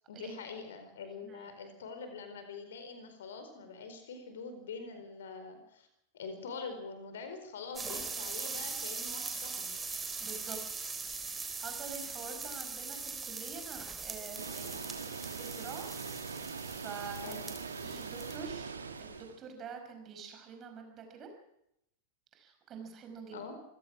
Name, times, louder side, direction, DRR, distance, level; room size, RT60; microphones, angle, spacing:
voice 1, 0.1-5.9 6.1-9.8 17.2-17.6 23.3-23.5, left 4 dB, 60° left, 8 dB, 4.4 m, -44 dB
sound 1, 7.8-18.5 18.8-19.1, right 4 dB, 15° right, 3.6 m, -41 dB
voice 2, 10.2-10.6 10.8-10.9 11.5-15.9 16.2-17.4 17.8-21.3 22.3-23.5, right 5 dB, 30° right, 5 dB, 5.5 m, -47 dB
Water, 14.4-19.4, right 5 dB, 75° right, 1.6 m, -42 dB
27.0 x 17.0 x 6.1 m, 0.78 s
figure-of-eight pair, 90°, 0 cm